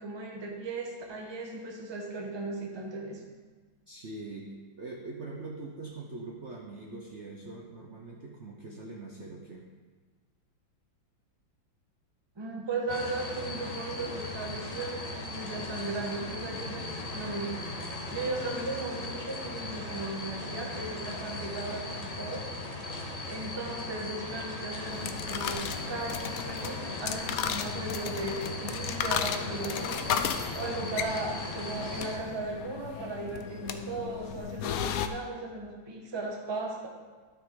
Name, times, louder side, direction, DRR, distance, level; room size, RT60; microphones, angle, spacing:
voice 1, 0.0-3.2 12.4-17.6 18.1-22.4 23.3-30.1 30.5-36.9, right 2 dB, 20° right, 0 dB, 0.9 m, -36 dB
voice 2, 3.9-9.6, right 3 dB, 50° right, 0 dB, 0.9 m, -42 dB
sound 1, 12.9-32.2, left 2 dB, 35° left, 0.6 m, -38 dB
sound 2, 24.8-35.1, left 8 dB, 80° left, 0.7 m, -35 dB
12.5 x 7.0 x 3.8 m, 1.4 s
omnidirectional pair, 2.1 m